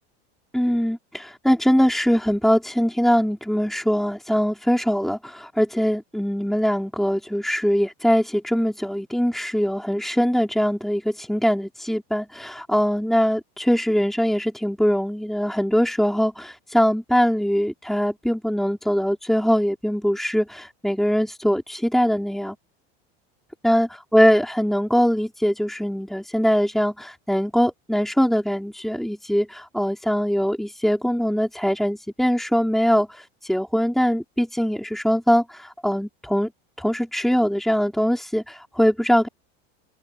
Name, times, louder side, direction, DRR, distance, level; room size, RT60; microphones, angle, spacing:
voice 1, 0.5-22.5 23.6-36.5 36.8-39.3, equal, ahead, 4.9 m, -22 dB
supercardioid pair, 135°, 33 cm